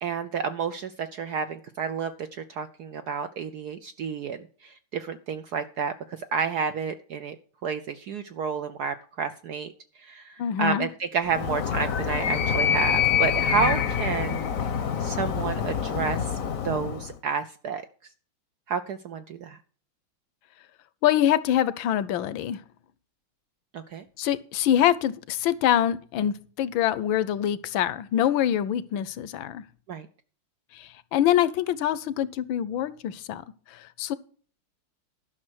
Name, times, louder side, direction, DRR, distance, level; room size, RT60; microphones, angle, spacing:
voice 1, 0.0-5.9 6.3-7.4 7.6-9.7 10.0-14.5 15.0-16.3 16.6-17.8 18.7-19.6 23.7-24.0 29.9-30.1, right 6 dB, 70° right, 10 dB, 0.9 m, -30 dB
voice 2, 10.4-10.9 21.0-22.6 24.2-29.6 30.7-33.4 33.7-34.1, left 11 dB, 70° left, 17 dB, 1.4 m, -25 dB
Animal, 11.3-17.1, left 8 dB, 55° left, 1.0 m, -26 dB
12.0 x 6.3 x 6.2 m, 0.43 s
omnidirectional pair, 2.4 m